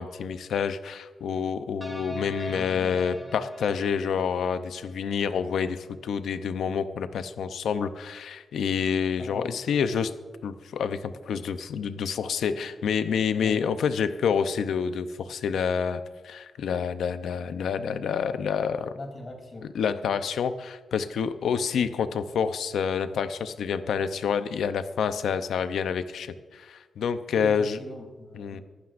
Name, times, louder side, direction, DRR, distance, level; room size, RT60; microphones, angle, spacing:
voice 1, 0.0-10.1 10.4-18.9 19.7-27.8 28.3-28.6, left 6 dB, 90° left, 10 dB, 0.6 m, -28 dB
sound 1, 1.8-5.1, equal, 5° right, 2.4 m, -41 dB
voice 2, 2.5-3.0 9.2-9.6 13.4-13.7 18.9-19.7 27.3-28.6, left 2 dB, 45° left, 2 dB, 3.2 m, -41 dB
24.5 x 12.0 x 2.6 m, 1.3 s
cardioid pair, 100°, 0 cm